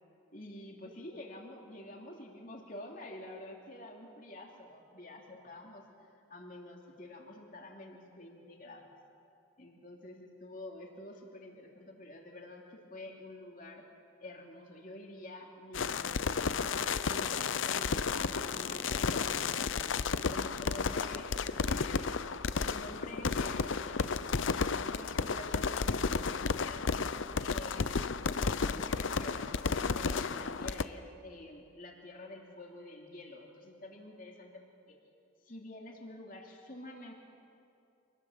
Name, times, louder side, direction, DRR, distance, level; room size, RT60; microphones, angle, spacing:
voice 1, 0.3-5.8 6.3-8.9 9.6-13.9 14.2-16.5 17.1-19.9 20.3-21.3 21.6-24.2 24.6-25.9 26.2-26.9 27.4-34.9 35.4-37.1, left 1 dB, 45° left, 0 dB, 2.9 m, -48 dB
sound 1, 15.7-30.8, left 5 dB, 75° left, 0.6 m, -32 dB
26.0 x 19.0 x 7.5 m, 2.7 s
head